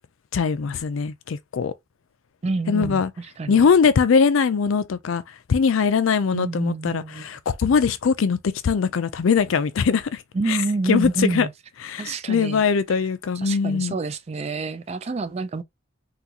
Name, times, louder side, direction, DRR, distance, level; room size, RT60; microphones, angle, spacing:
voice 1, 0.3-1.7 2.7-3.1 3.5-5.2 5.5-8.4 8.6-10.2 10.5-10.6 10.9-11.5 11.8-14.0, left 6 dB, 75° left, 0.4 m, -21 dB
voice 2, 2.4-3.7 6.3-7.3 10.3-11.5 12.0-12.6 12.9-13.0 13.4-15.6, right 3 dB, 30° right, 0.3 m, -28 dB
3.8 x 2.3 x 2.8 m
head